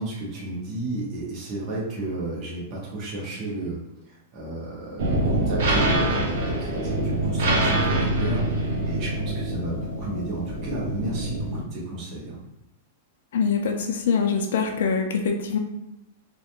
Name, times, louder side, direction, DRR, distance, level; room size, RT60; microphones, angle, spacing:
voice 1, 0.0-8.5 8.8-12.4, right 2 dB, 30° right, -5 dB, 0.8 m, -32 dB
sound 1, 5.0-11.6, right 1 dB, 65° right, 0.5 m, -25 dB
voice 2, 13.3-15.6, left 5 dB, 70° left, 3 dB, 0.3 m, -24 dB
2.3 x 2.1 x 2.9 m, 0.89 s
supercardioid pair, 170°, 0 cm